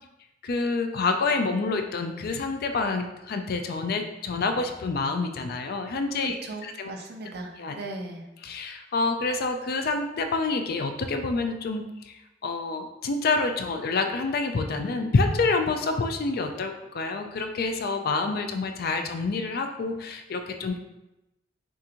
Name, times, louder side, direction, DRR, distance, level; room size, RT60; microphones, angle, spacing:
voice 1, 0.4-6.4 6.8-6.9 7.6-7.7 8.4-20.8, left 3 dB, 55° left, 6 dB, 0.4 m, -27 dB
voice 2, 6.2-8.3, right 2 dB, 60° right, 2 dB, 0.6 m, -38 dB
6.0 x 2.6 x 2.9 m, 0.95 s
head